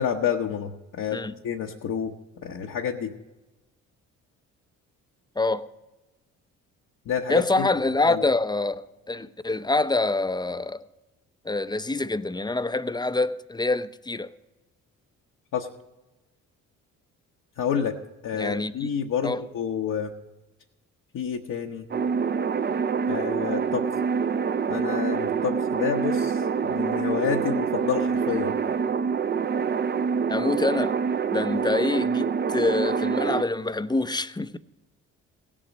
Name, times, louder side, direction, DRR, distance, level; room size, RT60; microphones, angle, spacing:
voice 1, 0.0-2.1 2.4-3.1 7.1-7.7 8.1-8.2 15.5-15.7 17.6-18.0 18.2-20.1 21.1-21.9 23.1-23.9 24.7-28.5, left 7 dB, 60° left, 1.0 m, -29 dB
voice 2, 7.3-10.8 11.4-14.3 18.3-18.9 19.2-19.4 30.3-31.0 31.3-34.6, left 2 dB, 10° left, 0.6 m, -26 dB
sound 1, 21.9-33.4, right 6 dB, 30° right, 0.6 m, -26 dB
16.5 x 7.5 x 5.2 m
supercardioid pair, 55°, 36 cm